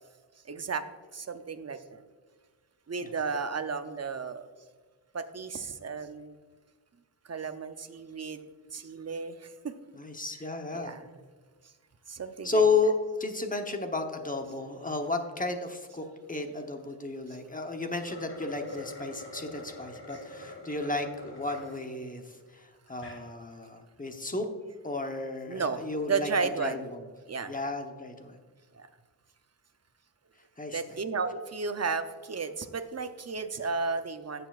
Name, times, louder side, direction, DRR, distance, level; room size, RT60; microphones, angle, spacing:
voice 1, 0.4-0.9 1.1-2.0 2.9-4.5 5.1-6.3 7.2-8.5 8.7-9.7 10.7-11.1 12.1-12.6 17.3-17.4 25.5-26.9 27.3-27.5 28.7-28.9 30.7-34.5, right 4 dB, 35° right, 9 dB, 0.6 m, -33 dB
voice 2, 10.0-10.9 12.4-22.2 22.5-24.5 24.8-26.3 26.6-27.0 27.5-28.4 30.6-30.8, left 3 dB, 20° left, 4 dB, 0.9 m, -32 dB
sound 1, 18.0-21.8 22.3-22.4 22.9-23.2, left 2 dB, 70° left, 2.5 m, -44 dB
15.0 x 6.8 x 2.4 m, 1.5 s
wide cardioid pair, 105°, 44 cm